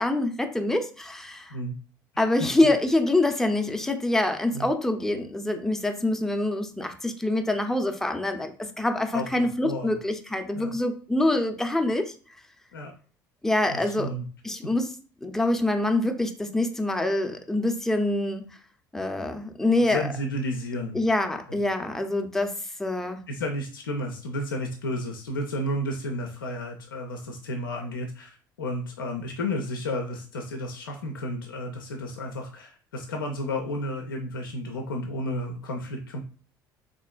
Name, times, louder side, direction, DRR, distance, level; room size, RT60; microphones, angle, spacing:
voice 1, 0.0-1.6 2.2-12.1 13.4-14.1 14.4-14.9 15.2-18.4 18.9-20.1 20.9-22.5 22.8-23.2, left 2 dB, 5° left, 0.5 m, -25 dB
voice 2, 9.1-10.0 10.5-10.7 12.7-12.9 13.7-14.3 19.8-21.0 21.5-21.6 23.3-36.2, left 1 dB, 85° left, 0.4 m, -32 dB
3.5 x 2.5 x 2.3 m
figure-of-eight pair, 60°, 11 cm